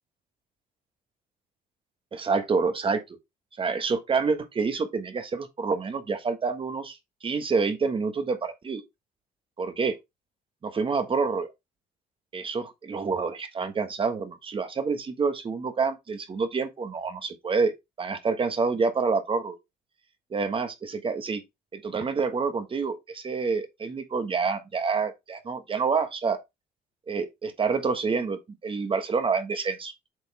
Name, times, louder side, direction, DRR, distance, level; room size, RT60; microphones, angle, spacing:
voice 1, 2.1-3.2 3.6-8.8 9.6-10.0 10.6-11.5 12.3-17.7 18.0-19.6 20.3-21.4 21.7-26.4 27.1-29.9, right 4 dB, 30° right, 1.4 m, -27 dB
8.0 x 4.1 x 3.4 m
cardioid pair, 110°, 17 cm